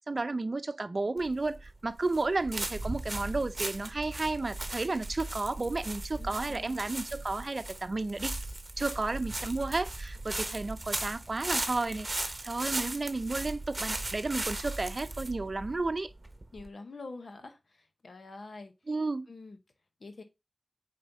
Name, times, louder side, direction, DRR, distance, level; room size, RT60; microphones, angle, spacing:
voice 1, 0.1-8.3 8.8-16.1 18.9-19.3, right 3 dB, 50° right, 0.6 m, -32 dB
sound 1, 1.2-16.7, right 2 dB, 35° right, 1.1 m, -37 dB
voice 2, 6.2-6.8 16.5-18.7 19.3-19.6 20.0-20.2, left 3 dB, 75° left, 1.0 m, -46 dB
5.3 x 4.3 x 5.2 m
wide cardioid pair, 60°, 0 cm